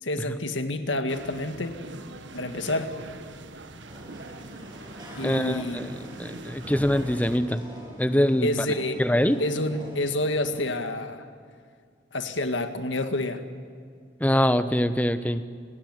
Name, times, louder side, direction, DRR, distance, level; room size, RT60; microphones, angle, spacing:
voice 1, 0.0-1.8 2.3-2.9 5.2-6.0 8.4-9.0 9.4-11.3 12.1-13.4, left 1 dB, 80° left, 7 dB, 2.0 m, -28 dB
sound 1, 1.1-7.4, right 2 dB, 75° right, 1.6 m, -43 dB
sound 2, 3.8-10.7, equal, 25° right, 7.9 m, -43 dB
voice 2, 5.2-5.9 6.2-7.6 8.0-8.5 9.0-9.4 14.2-15.4, equal, 10° left, 11 dB, 0.9 m, -23 dB
29.5 x 18.5 x 9.7 m, 2.1 s
head